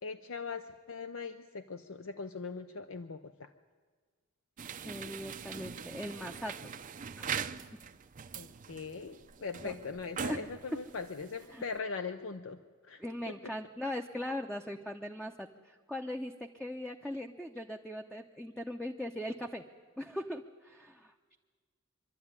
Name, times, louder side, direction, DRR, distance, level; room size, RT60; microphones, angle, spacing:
voice 1, 0.0-3.5 8.4-12.6 12.9-13.3, left 4 dB, 75° left, 8 dB, 0.7 m, -41 dB
sound 1, 4.6-11.8, right 7 dB, 40° right, 0.6 m, -42 dB
voice 2, 4.9-6.6 7.2-7.3 9.6-9.7 10.3-10.8 11.5-11.6 13.0-19.6 20.0-21.4, left 1 dB, 5° left, 3 dB, 0.6 m, -40 dB
25.0 x 12.0 x 9.6 m, 1.5 s
head